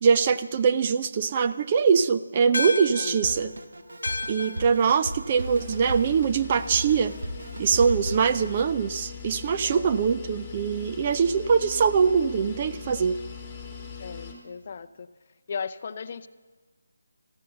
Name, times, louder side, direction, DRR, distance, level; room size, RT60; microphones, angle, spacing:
voice 1, 0.0-3.5 4.3-7.1 7.6-13.2, right 6 dB, 25° right, 11 dB, 0.4 m, -23 dB
sound 1, 2.5-7.2, left 3 dB, 70° left, 1.1 m, -36 dB
Drum kit, 3.2-8.6, right 1 dB, 70° right, 1.3 m, -36 dB
sound 2, 5.3-14.3, left 6 dB, 10° left, 2.1 m, -41 dB
voice 2, 14.0-15.1 15.5-16.3, left 6 dB, 35° left, 11 dB, 0.6 m, -36 dB
14.5 x 11.5 x 7.8 m, 1.4 s
figure-of-eight pair, 170°, 0 cm